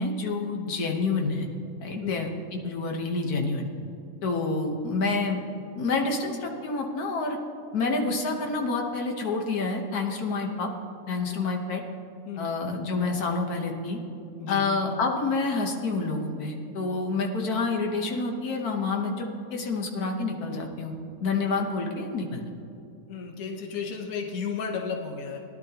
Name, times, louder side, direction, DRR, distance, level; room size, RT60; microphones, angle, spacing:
voice 1, 0.0-1.5 1.8-3.7 4.2-5.4 5.8-7.4 7.7-10.7 11.1-11.8 12.4-14.0 14.5-20.9 21.2-22.4, left 3 dB, 90° left, 2 dB, 1.7 m, -28 dB
voice 2, 23.1-25.4, left 6 dB, 70° left, 2 dB, 1.4 m, -33 dB
18.5 x 11.0 x 2.9 m, 2.7 s
omnidirectional pair, 1.6 m